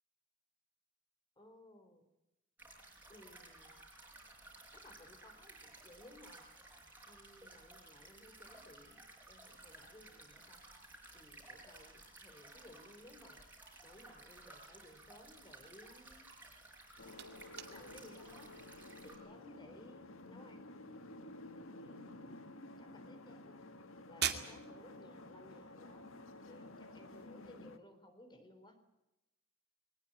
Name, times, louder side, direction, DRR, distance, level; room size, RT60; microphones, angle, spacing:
voice 1, 1.4-2.0 3.1-3.8 4.7-6.5 7.1-9.0 9.3-10.6 11.1-13.4 13.8-16.3 17.7-18.6 19.0-20.8 21.8-22.5 22.8-23.6 24.1-26.1 26.5-28.8, left 1 dB, 20° left, 8 dB, 3.9 m, -59 dB
sound 1, 2.6-19.2, right 2 dB, 10° right, 5.4 m, -57 dB
sound 2, 16.6-27.3, right 9 dB, 50° right, 2.4 m, -48 dB
sound 3, 17.0-27.8, left 2 dB, 70° left, 1.7 m, -53 dB
21.5 x 19.5 x 9.1 m, 0.94 s
head